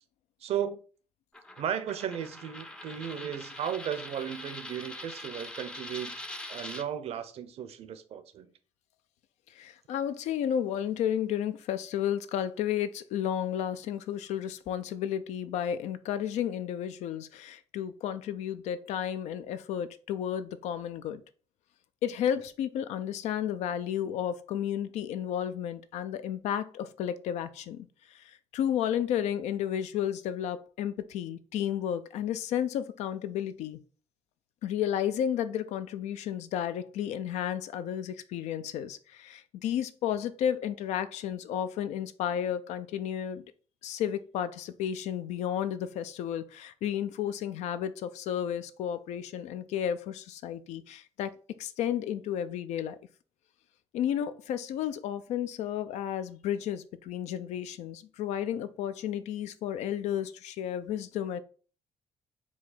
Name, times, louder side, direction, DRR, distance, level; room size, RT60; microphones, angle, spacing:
voice 1, 0.4-0.8 1.6-6.2 6.5-8.5, right 9 dB, 65° right, 0.6 m, -35 dB
Coin (dropping), 1.3-6.9, left 1 dB, 10° left, 0.4 m, -43 dB
voice 2, 9.5-21.2 22.0-33.8 34.6-43.4 43.8-51.3 51.6-53.0 53.9-61.4, left 9 dB, 90° left, 0.4 m, -32 dB
4.6 x 2.3 x 4.0 m
cardioid pair, 110°, 11 cm